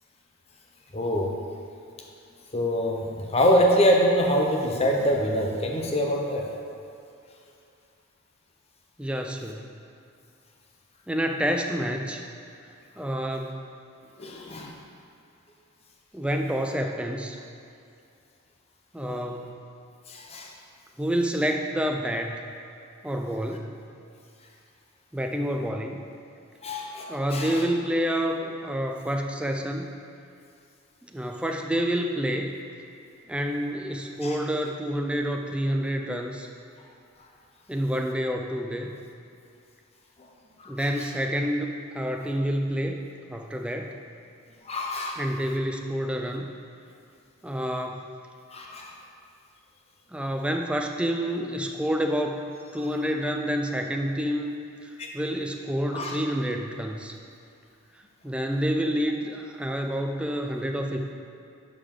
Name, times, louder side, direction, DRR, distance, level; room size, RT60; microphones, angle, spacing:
voice 1, 0.9-1.3 2.5-6.5 14.2-14.7 19.0-19.2 20.1-20.5 26.6-27.6 34.2-34.3 40.6-40.7 44.7-45.2 48.5-48.9 55.0-55.1 55.9-56.2, equal, 30° left, 1 dB, 0.8 m, -25 dB
voice 2, 9.0-9.6 11.1-12.2 13.0-13.6 16.1-17.4 18.9-19.6 21.0-22.5 23.0-23.8 25.1-26.0 27.1-29.9 31.0-32.6 33.3-36.5 37.7-39.0 40.7-41.7 41.9-43.0 43.3-43.9 45.2-46.5 47.4-48.1 50.1-52.4 52.7-54.6 54.8-57.1 58.2-61.1, equal, 5° right, 3 dB, 0.4 m, -28 dB
11.0 x 5.1 x 3.7 m, 2.5 s
head